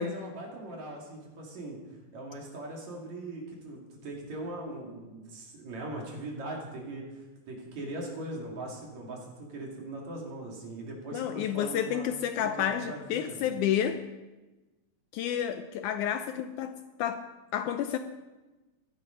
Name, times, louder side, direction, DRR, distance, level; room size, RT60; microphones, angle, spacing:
voice 1, 0.0-1.8 2.1-13.5, right 2 dB, 55° right, -1 dB, 3.8 m, -40 dB
voice 2, 11.1-14.0 15.1-16.7 17.0-17.2 17.5-18.0, left 9 dB, 80° left, 9 dB, 1.9 m, -30 dB
15.0 x 11.5 x 5.2 m, 1.1 s
omnidirectional pair, 3.9 m